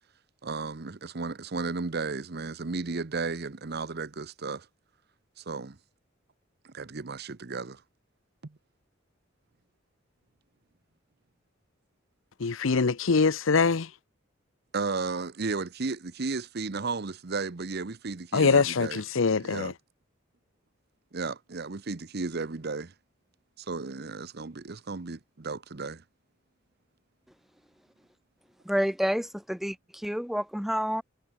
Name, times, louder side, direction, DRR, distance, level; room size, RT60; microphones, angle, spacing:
voice 1, 0.4-4.7 5.4-5.8 6.6-7.8 8.4-8.6 14.7-19.0 19.4-19.7 21.1-22.9 23.6-26.0, right 4 dB, 55° right, 0.8 m, -34 dB
voice 2, 12.4-13.9 18.3-19.7, left 4 dB, 75° left, 0.7 m, -23 dB
voice 3, 28.6-31.0, equal, ahead, 0.6 m, -29 dB
head